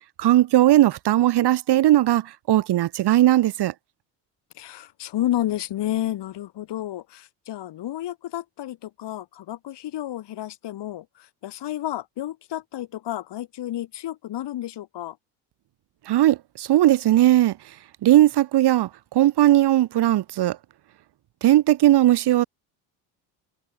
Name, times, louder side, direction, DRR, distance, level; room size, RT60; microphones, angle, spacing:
voice 1, 0.2-3.7 16.1-17.5 18.0-20.6 21.4-22.5, right 14 dB, 55° right, 1.7 m, -18 dB
voice 2, 4.5-15.2, left 13 dB, 60° left, 4.8 m, -31 dB
supercardioid pair, 80°, 47 cm